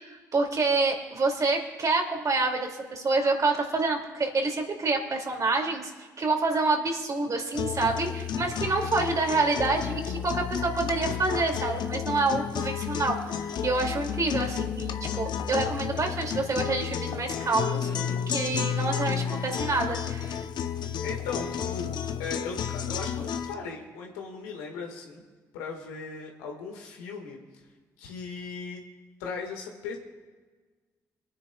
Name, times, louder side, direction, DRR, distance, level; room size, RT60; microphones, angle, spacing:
voice 1, 0.0-17.9 18.3-20.4, right 3 dB, 45° right, 2 dB, 2.5 m, -27 dB
sound 1, 7.5-23.5, left 8 dB, 60° left, 0.7 m, -31 dB
voice 2, 17.8-18.2 21.0-25.2 25.5-27.4 28.0-28.8 29.2-30.0, left 5 dB, 85° left, 1 dB, 1.8 m, -38 dB
27.0 x 9.7 x 2.4 m, 1.4 s
hypercardioid pair, 45°, 8 cm